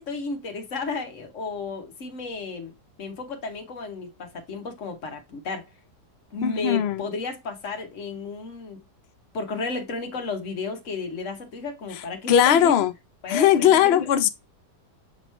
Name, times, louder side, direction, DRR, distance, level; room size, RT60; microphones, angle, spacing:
voice 1, 0.0-2.7 3.0-5.7 6.3-8.8 9.3-12.8 13.2-14.2, left 4 dB, 50° left, 1.3 m, -33 dB
voice 2, 6.4-7.0 12.3-12.9 13.3-14.3, left 10 dB, 85° left, 0.5 m, -19 dB
7.2 x 3.0 x 4.3 m
omnidirectional pair, 1.8 m